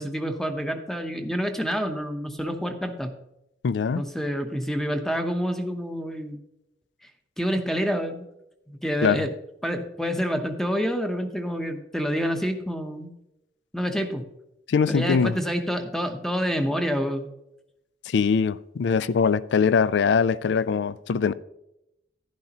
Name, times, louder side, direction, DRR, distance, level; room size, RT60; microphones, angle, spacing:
voice 1, 0.0-3.1 3.9-6.4 7.4-8.3 8.7-9.3 9.6-13.1 13.7-14.2 14.9-17.3, equal, ahead, 0.8 m, -28 dB
voice 2, 3.6-4.0 9.0-9.3 14.7-15.4 18.1-21.3, left 6 dB, 80° left, 0.4 m, -22 dB
11.0 x 10.5 x 2.9 m
head